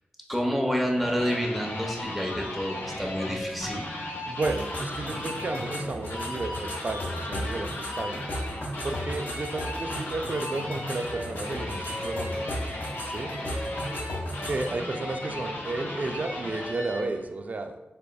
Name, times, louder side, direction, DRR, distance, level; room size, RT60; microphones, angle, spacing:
voice 1, 0.3-3.8 14.4-14.5, equal, ahead, 0 dB, 0.7 m, -28 dB
sound 1, 0.7-17.2, left 1 dB, 90° left, 0.6 m, -36 dB
voice 2, 4.3-8.3 8.8-12.4 13.1-13.3 14.3-17.8, right 2 dB, 45° right, 6 dB, 0.3 m, -32 dB
sound 2, 4.4-14.7, equal, 65° left, 1.0 m, -36 dB
4.1 x 3.4 x 2.2 m, 1.0 s
wide cardioid pair, 80°, 4 cm